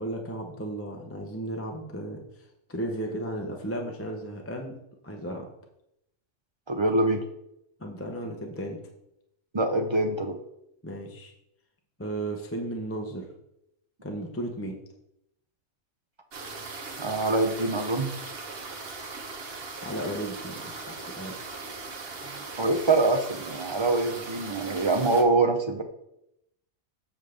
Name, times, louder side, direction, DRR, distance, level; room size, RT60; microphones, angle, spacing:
voice 1, 0.0-4.7 5.0-5.5 7.8-8.8 10.8-11.3 12.0-13.3 14.0-14.8 19.8-21.4, right 1 dB, 15° left, 2 dB, 0.7 m, -35 dB
voice 2, 6.7-7.2 9.5-10.4 17.0-18.1 22.4-25.8, right 2 dB, 35° right, 5 dB, 0.4 m, -24 dB
sound 1, 16.3-25.2, right 3 dB, 55° right, 1.1 m, -39 dB
7.3 x 3.5 x 6.4 m, 0.81 s
omnidirectional pair, 1.3 m